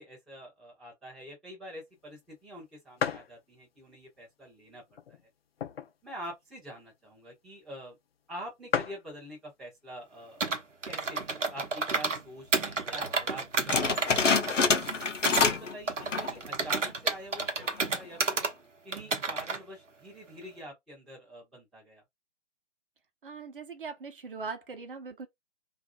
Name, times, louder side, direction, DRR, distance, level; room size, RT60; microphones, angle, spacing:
voice 1, 0.0-5.0 6.0-8.0 8.3-10.4 10.8-14.8 15.2-18.5 18.8-22.0, equal, ahead, 0.6 m, -46 dB
sound 1, 2.0-2.1 2.5-2.6 3.0-3.4 4.0-4.1 4.9-6.1 6.4-6.5 6.7-7.0 7.7-7.8 8.1-8.2 8.4-8.5 8.7-9.1 10.0-10.3 10.9-11.0 11.1-11.9, left 7 dB, 55° left, 0.5 m, -34 dB
Computer keyboard, 10.4-12.2 12.5-15.5 15.9-18.5 18.9-19.6, right 4 dB, 85° right, 0.8 m, -31 dB
sound 2, 13.7-15.7 16.0-16.4 16.9-17.0 17.6-18.0, left 4 dB, 85° left, 0.8 m, -26 dB
voice 2, 23.2-25.3, right 4 dB, 50° right, 0.8 m, -40 dB
2.6 x 2.4 x 2.3 m
figure-of-eight pair, 140°, 36 cm